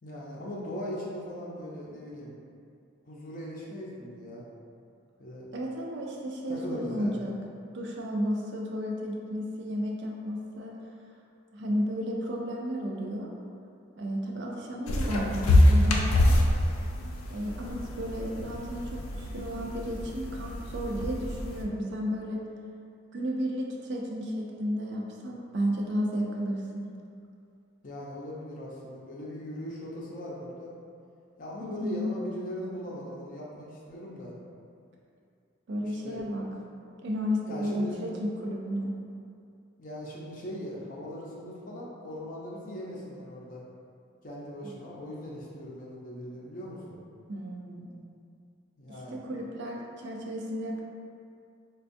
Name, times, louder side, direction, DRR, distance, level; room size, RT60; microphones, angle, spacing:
voice 1, 0.0-2.3 3.0-4.4 5.2-5.5 6.5-7.2 27.8-30.8 31.4-34.3 35.8-36.2 37.5-38.0 39.8-43.6 44.2-46.9 48.8-49.2, equal, 40° left, -5 dB, 0.5 m, -39 dB
voice 2, 5.5-7.3 7.7-10.8 11.5-13.3 13.9-16.4 17.3-22.5 23.1-26.8 31.6-32.1 35.7-36.4 37.0-39.0 47.3-48.1 48.9-50.8, equal, 55° right, -1 dB, 0.4 m, -33 dB
sound 1, 14.9-21.6, left 1 dB, 90° left, 0.4 m, -26 dB
4.4 x 2.3 x 2.5 m, 2.4 s
head